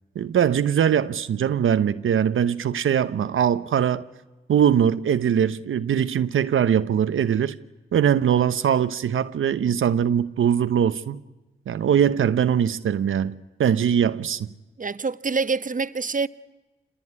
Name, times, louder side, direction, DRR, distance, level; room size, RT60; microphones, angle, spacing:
voice 1, 0.2-4.1 4.5-7.6 7.9-11.2 11.7-14.5, right 9 dB, 75° right, 0.8 m, -21 dB
voice 2, 14.8-16.3, right 4 dB, 40° right, 1.1 m, -26 dB
26.5 x 20.5 x 9.7 m
cardioid pair, 50°, 21 cm